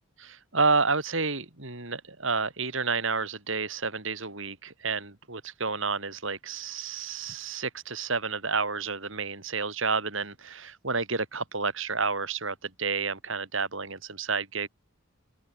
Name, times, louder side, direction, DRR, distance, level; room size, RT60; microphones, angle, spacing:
voice 1, 0.2-14.7, right 4 dB, 60° right, 3.8 m, -30 dB
open air
head